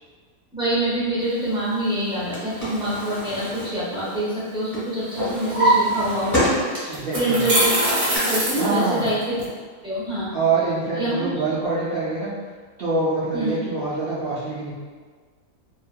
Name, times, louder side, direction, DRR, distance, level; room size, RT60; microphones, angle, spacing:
voice 1, 0.5-6.5 6.7-9.4 9.8-10.3 10.9-11.3 13.3-13.5, right 1 dB, 5° right, -11 dB, 0.5 m, -25 dB
Drawer open or close, 2.0-4.4 4.7-7.1 7.5-8.2, right 1 dB, 15° left, 1.1 m, -25 dB
sound 1, 6.3-6.4 6.9-9.4, right 1 dB, 85° right, 1.3 m, -23 dB
voice 2, 6.9-7.4 8.5-9.1 10.3-12.4 12.8-14.7, right 3 dB, 60° right, -12 dB, 0.6 m, -25 dB
2.8 x 2.4 x 2.2 m, 1.6 s
omnidirectional pair, 1.6 m